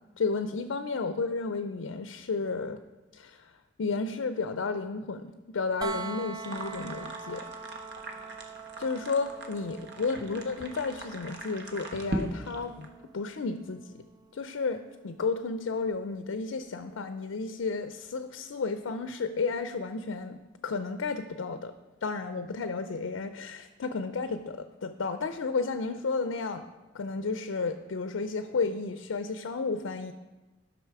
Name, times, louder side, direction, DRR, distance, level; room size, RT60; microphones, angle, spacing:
voice 1, 0.2-2.8 3.1-3.4 3.8-7.4 8.8-12.9 13.1-14.0 14.3-21.7 22.0-26.6 26.9-30.1, left 4 dB, 80° left, 9 dB, 0.5 m, -32 dB
sound 1, 5.8-17.6 19.5-19.6, right 4 dB, 20° right, 0.3 m, -45 dB
sound 2, 6.4-12.9, right 1 dB, 60° right, 1.0 m, -40 dB
11.5 x 6.1 x 4.7 m, 1.2 s
head